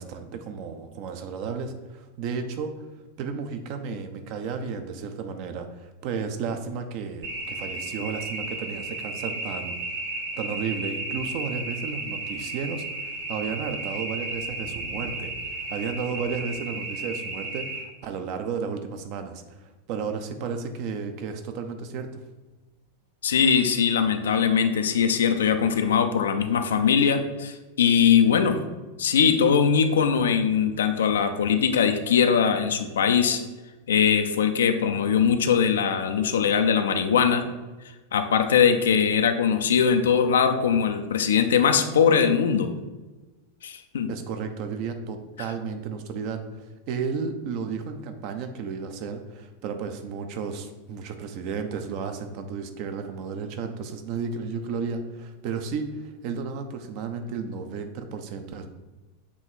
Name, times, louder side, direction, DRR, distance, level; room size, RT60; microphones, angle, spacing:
voice 1, 0.0-2.7 3.2-9.8 10.4-22.2 44.1-58.7, right 5 dB, 45° right, 6 dB, 0.6 m, -33 dB
sound 1, 7.2-17.8, right 2 dB, 65° right, 1.1 m, -33 dB
voice 2, 23.2-28.6 29.0-33.4 33.9-37.4 38.1-42.7 43.6-44.1, left 7 dB, 65° left, 7 dB, 0.5 m, -21 dB
7.0 x 3.2 x 4.5 m, 1.2 s
figure-of-eight pair, 90°, 0 cm